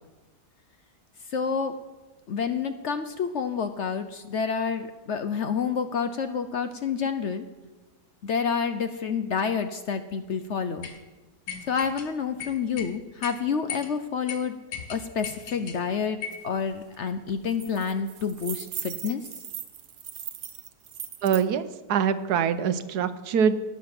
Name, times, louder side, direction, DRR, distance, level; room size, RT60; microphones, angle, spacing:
voice 1, 1.3-1.7 2.3-7.4 8.2-10.9 11.7-14.6 14.9-16.2 16.4-19.2, left 6 dB, 60° left, 10 dB, 0.8 m, -28 dB
sound 1, 10.8-11.0 11.5-12.1 12.4-12.9 13.2-13.3 13.7-13.9 14.3-14.4 14.7-15.8 16.2-16.4, left 7 dB, 80° left, 1.7 m, -36 dB
sound 2, 16.3-16.4 16.7-17.0 17.3-21.4, right 9 dB, 60° right, 1.0 m, -39 dB
voice 2, 21.2-21.6 21.9-23.5, right 7 dB, 80° right, 12 dB, 1.3 m, -24 dB
18.5 x 7.2 x 5.9 m, 1.2 s
omnidirectional pair, 1.7 m